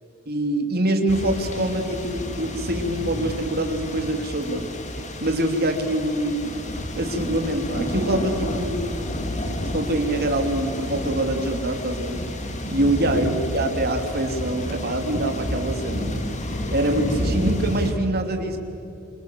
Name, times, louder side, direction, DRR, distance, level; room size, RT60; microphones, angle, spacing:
voice 1, 0.3-4.7 5.2-6.7 7.0-8.8 9.7-12.2 12.7-16.2 16.7-18.6, right 1 dB, 50° right, 4 dB, 3.0 m, -24 dB
sound 1, 1.1-17.9, left 1 dB, 35° left, 2.4 m, -30 dB
27.0 x 26.0 x 7.7 m, 2.8 s
head